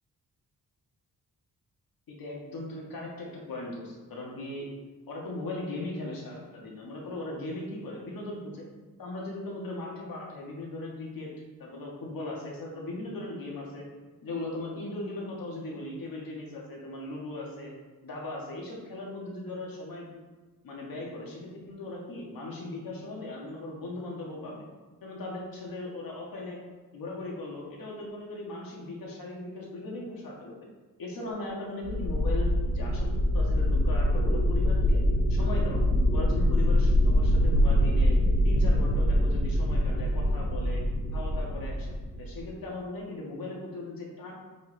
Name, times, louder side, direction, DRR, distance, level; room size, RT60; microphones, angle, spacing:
voice 1, 2.1-4.7 5.1-8.7 9.0-11.3 11.6-13.9 14.2-17.7 18.0-20.1 20.6-24.7 25.0-26.6 26.9-30.7 31.0-33.1 33.3-35.0 35.3-35.8 36.1-38.2 38.4-40.8 41.1-44.3, left 2 dB, 80° left, -3 dB, 1.6 m, -38 dB
sound 1, 31.8-42.4, equal, 35° right, 1.6 m, -24 dB
7.1 x 4.5 x 3.3 m, 1.3 s
wide cardioid pair, 175°, 34 cm